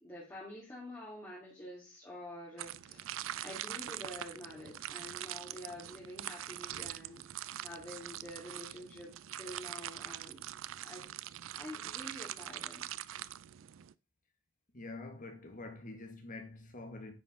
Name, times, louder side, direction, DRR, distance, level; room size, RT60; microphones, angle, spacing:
voice 1, 0.0-7.3 7.6-10.4 10.8-11.0 11.5-12.9, left 1 dB, 15° left, 2.6 m, -48 dB
sound 1, 2.6-13.9, right 12 dB, 75° right, 0.4 m, -43 dB
voice 2, 14.7-17.1, left 2 dB, 45° left, 2.0 m, -46 dB
9.7 x 5.7 x 3.8 m
head